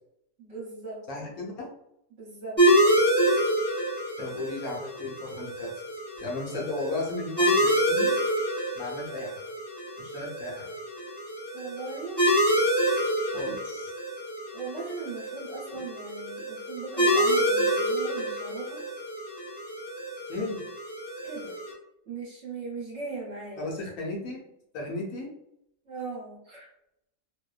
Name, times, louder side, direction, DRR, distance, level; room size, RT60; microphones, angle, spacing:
voice 1, 0.4-1.0 2.1-2.9 11.5-12.2 14.5-18.8 21.2-21.6 22.1-23.7 25.9-26.7, right 4 dB, 55° right, -5 dB, 1.0 m, -38 dB
voice 2, 1.1-1.7 4.2-5.7 6.2-8.1 8.7-9.4 10.0-10.7 13.3-13.9 20.3-20.6 23.6-24.4 24.7-25.3, left 2 dB, 70° left, -2 dB, 1.1 m, -35 dB
sound 1, 2.6-21.7, equal, 15° left, 0.4 m, -27 dB
2.7 x 2.1 x 2.3 m, 0.79 s
omnidirectional pair, 1.7 m